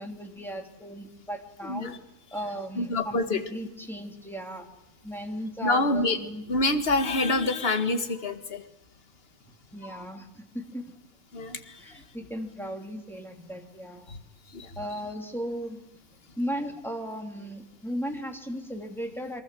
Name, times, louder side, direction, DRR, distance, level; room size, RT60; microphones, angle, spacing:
voice 1, 0.0-1.9 2.3-4.7 5.0-6.4 9.7-10.9 11.8-14.1 14.8-15.8 16.4-19.4, equal, ahead, 2 dB, 3.0 m, -36 dB
voice 2, 1.6-2.0 2.8-3.4 5.6-6.2 6.5-8.6 9.8-10.0 11.3-11.8 14.5-14.7, left 2 dB, 45° left, 8 dB, 2.0 m, -26 dB
26.5 x 24.0 x 7.7 m, 0.89 s
omnidirectional pair, 1.5 m